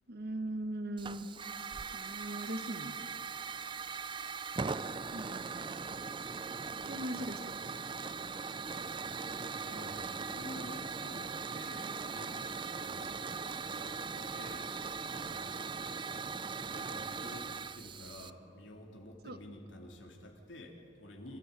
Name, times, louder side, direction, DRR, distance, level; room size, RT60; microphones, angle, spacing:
voice 1, 0.1-1.3 1.9-2.9 5.1-5.5 6.8-7.9 17.2-17.3 19.2-19.4, right 1 dB, 55° right, 9 dB, 1.4 m, -40 dB
Hiss / Fire, 1.0-18.3, right 5 dB, 25° right, 0.5 m, -40 dB
voice 2, 9.6-13.2 13.7-15.7 16.7-21.4, left 1 dB, 75° left, 2 dB, 3.2 m, -50 dB
26.5 x 14.0 x 9.2 m, 3.0 s
head